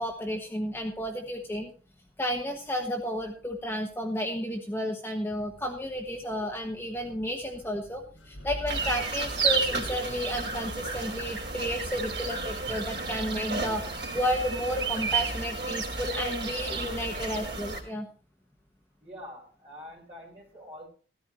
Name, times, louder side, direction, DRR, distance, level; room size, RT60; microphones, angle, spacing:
voice 1, 0.0-1.7 2.2-13.8 14.1-18.1, equal, 10° left, 1 dB, 1.3 m, -32 dB
sound 1, 5.3-10.3, equal, 80° left, 6.4 m, -45 dB
sound 2, 8.7-17.8, right 4 dB, 60° right, 3.5 m, -32 dB
voice 2, 19.0-20.9, left 1 dB, 30° right, -2 dB, 6.4 m, -45 dB
15.5 x 13.0 x 3.1 m, 0.39 s
head